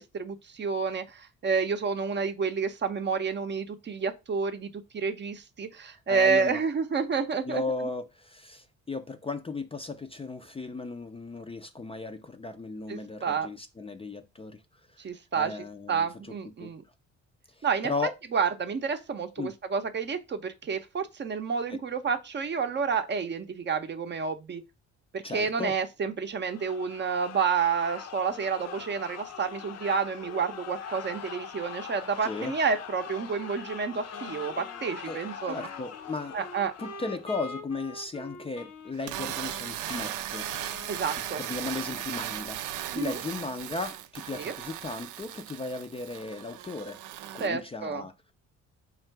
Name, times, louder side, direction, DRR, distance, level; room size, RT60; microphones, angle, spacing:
voice 1, 0.0-7.6 12.9-13.5 15.0-16.8 17.6-17.9 18.3-24.6 25.1-35.7 36.3-36.7 40.9-41.4 42.9-43.2 44.3-44.5 47.4-48.0, right 5 dB, 35° right, 0.6 m, -29 dB
voice 2, 6.1-6.6 7.4-14.6 14.9-15.1 15.4-16.1 16.6-16.7 17.5-18.1 19.4-19.5 25.2-25.7 32.2-32.5 35.1-35.2 35.5-36.4 36.8-40.5 41.2-42.6 42.9-47.0 47.3-48.1, left 3 dB, 20° left, 0.4 m, -36 dB
sound 1, 26.4-37.4, left 8 dB, 60° left, 0.7 m, -42 dB
Wind instrument woodwind instrument, 34.1-42.0, left 3 dB, 80° left, 1.2 m, -45 dB
sound 2, 38.9-47.5, right 12 dB, 80° right, 0.5 m, -37 dB
4.4 x 2.4 x 4.4 m
cardioid pair, 90°, 30 cm